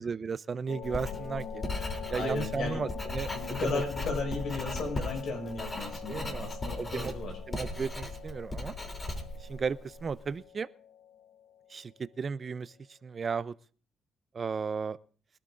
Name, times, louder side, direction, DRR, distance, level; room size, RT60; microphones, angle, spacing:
voice 1, 0.0-1.6 2.1-3.3 3.6-3.8 6.1-6.5 6.8-7.1 7.5-8.7 9.4-10.7 11.7-11.9 12.2-12.7 13.0-13.5 14.3-15.0, right 5 dB, 40° right, 0.5 m, -34 dB
sound 1, 0.7-12.2, left 9 dB, 90° left, 0.9 m, -45 dB
Writing, 0.8-10.2, left 1 dB, 25° left, 3.2 m, -38 dB
voice 2, 1.7-2.8 3.3-7.4, left 4 dB, 65° left, 6.0 m, -35 dB
23.5 x 12.5 x 2.6 m
cardioid pair, 90°, 0 cm